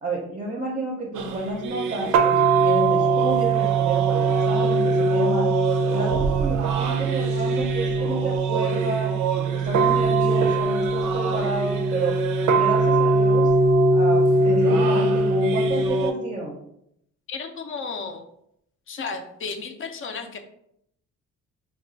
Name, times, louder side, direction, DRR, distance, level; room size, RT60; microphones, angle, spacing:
voice 1, 0.0-5.5 5.9-9.1 9.5-12.1 12.5-13.5 13.9-16.6, right 2 dB, 25° right, -2 dB, 0.6 m, -30 dB
sound 1, 1.2-16.1, right 3 dB, 85° right, 0.5 m, -21 dB
voice 2, 17.3-18.2 18.9-20.4, left 4 dB, 45° left, 7 dB, 0.5 m, -33 dB
2.3 x 2.3 x 3.8 m, 0.75 s
cardioid pair, 90°, 30 cm